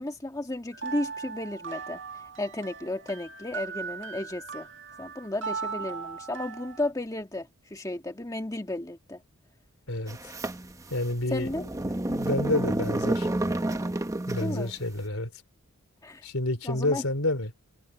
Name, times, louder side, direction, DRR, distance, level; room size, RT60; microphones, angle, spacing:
voice 1, 0.0-2.0 2.4-4.7 5.0-9.2 11.3-11.6 14.4-14.7 16.0-16.3 16.7-17.0, left 1 dB, 15° left, 1.7 m, -33 dB
sound 1, 0.7-6.9, right 5 dB, 60° right, 2.0 m, -38 dB
voice 2, 9.9-10.3 10.9-13.3 14.3-15.3 16.2-17.5, left 1 dB, 75° left, 4.3 m, -29 dB
sound 2, 10.1-14.7, right 1 dB, 15° right, 0.9 m, -30 dB
head